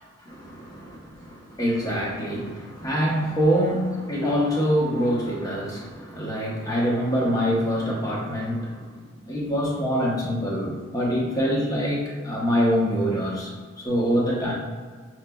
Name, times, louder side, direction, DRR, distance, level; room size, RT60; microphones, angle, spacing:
voice 1, 0.2-9.0 9.2-14.5, equal, 20° left, -4 dB, 0.9 m, -25 dB
6.3 x 3.2 x 2.3 m, 1.5 s
head